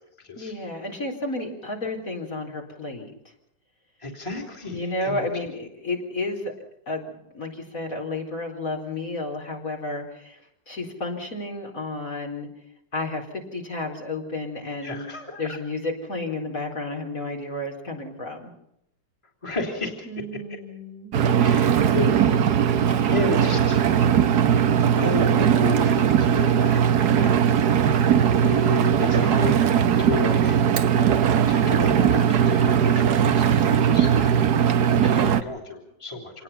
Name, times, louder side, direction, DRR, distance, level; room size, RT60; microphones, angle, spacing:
voice 1, 0.4-3.1 4.7-6.5 6.9-10.4 10.7-12.5 12.9-15.1 15.4-18.5 20.1-21.1 34.5-35.3, left 2 dB, 45° left, 0 dB, 4.6 m, -32 dB
voice 2, 4.0-5.2 14.8-15.4 19.4-19.9 21.4-22.2 23.0-24.1 25.0-26.8 27.1-27.7 28.4-30.6 31.5-36.4, left 3 dB, 15° left, 2 dB, 3.4 m, -32 dB
Engine, 21.1-35.4, right 8 dB, 60° right, 1.5 m, -19 dB
27.0 x 20.0 x 5.7 m, 0.80 s
omnidirectional pair, 2.0 m